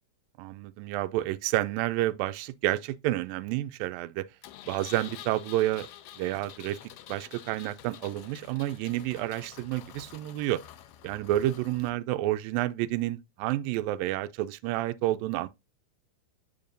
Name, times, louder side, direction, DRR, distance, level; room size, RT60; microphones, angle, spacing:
voice 1, 0.4-4.3 4.7-5.9 6.2-6.8 7.1-10.6 11.0-15.5, right 15 dB, 85° right, 2.2 m, -29 dB
Engine, 4.4-11.9, left 12 dB, 80° left, 2.2 m, -48 dB
7.1 x 6.9 x 2.5 m
omnidirectional pair, 4.1 m